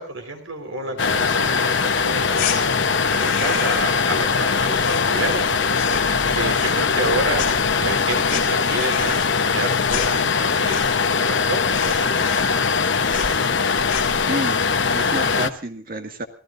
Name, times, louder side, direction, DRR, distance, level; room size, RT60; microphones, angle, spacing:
voice 1, 0.0-12.9, right 2 dB, 80° right, 6 dB, 4.2 m, -30 dB
sound 1, 0.7-9.0, left 1 dB, 20° right, 7.5 m, -41 dB
sound 2, 1.0-15.5, left 5 dB, 65° left, 1.0 m, -21 dB
sound 3, 2.4-2.6 3.0-4.0 4.2-5.4 5.7-6.2 6.5-7.1 7.4-11.1 11.4-11.5 11.7-12.8 13.1-13.4 13.8-14.2, left 7 dB, 40° left, 3.7 m, -31 dB
voice 2, 14.3-16.3, right 1 dB, 45° right, 6 dB, 2.0 m, -30 dB
28.0 x 16.0 x 2.6 m, 0.42 s
head